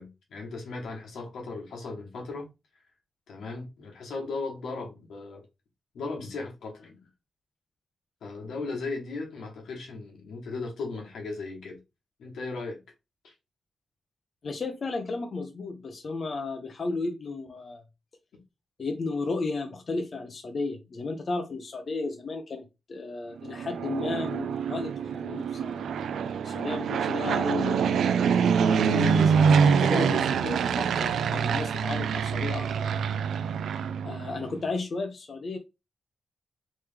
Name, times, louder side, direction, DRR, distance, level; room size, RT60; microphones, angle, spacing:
voice 1, 0.0-2.5 3.3-5.4 5.9-7.0 8.2-11.8 12.2-12.8 13.2-13.3, left 3 dB, 85° left, 1.3 m, -37 dB
voice 2, 14.4-17.8 18.8-25.9 26.4-28.1 28.8-33.1 34.0-35.6, left 3 dB, 50° left, 0.6 m, -34 dB
Fixed-wing aircraft airplane, 23.4-34.5, right 6 dB, 85° right, 0.3 m, -25 dB
3.2 x 3.1 x 3.3 m
cardioid pair, 95°, 0 cm